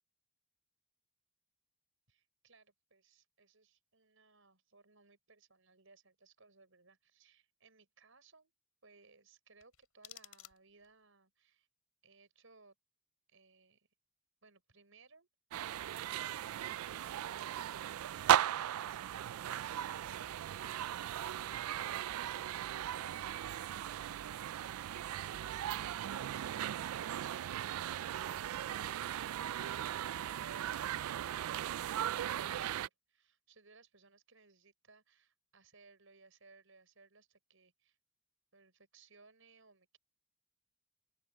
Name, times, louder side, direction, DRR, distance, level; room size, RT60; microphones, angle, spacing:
voice 1, 2.1-8.5 8.8-11.7 12.0-12.7 13.3-13.9 14.4-15.3 33.1-38.0 38.5-40.0, right 4 dB, 65° right, 6.5 m, -64 dB
sound 1, 9.6-11.0, left 13 dB, 85° left, 4.9 m, -56 dB
sound 2, 15.5-32.9, right 11 dB, 85° right, 0.3 m, -37 dB
open air
head